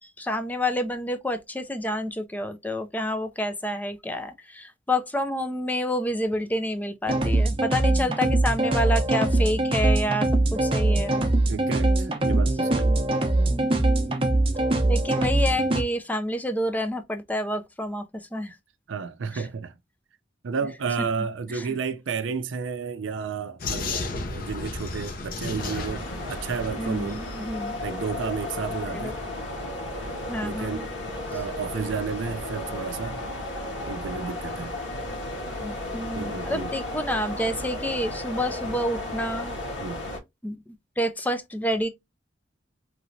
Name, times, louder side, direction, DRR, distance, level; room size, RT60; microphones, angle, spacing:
voice 1, 0.2-11.2 13.5-14.4 14.9-18.6 19.3-19.5 21.5-21.7 26.8-27.8 28.9-29.1 30.3-30.9 35.6-39.5 40.4-40.6 41.0-41.9, left 1 dB, 10° left, 0.4 m, -29 dB
sound 1, 7.1-15.8, right 2 dB, 30° right, 0.7 m, -22 dB
voice 2, 11.5-13.0 18.9-19.8 20.4-26.0 26.3-27.2 27.8-29.2 30.4-30.9 31.3-33.2 33.9-34.7 36.1-36.7 39.8-40.0, right 5 dB, 85° right, 0.4 m, -32 dB
Vehicle, 23.6-27.5, left 3 dB, 50° left, 0.7 m, -33 dB
sound 2, 25.6-40.2, left 1 dB, 80° left, 1.7 m, -34 dB
3.1 x 2.9 x 2.6 m
head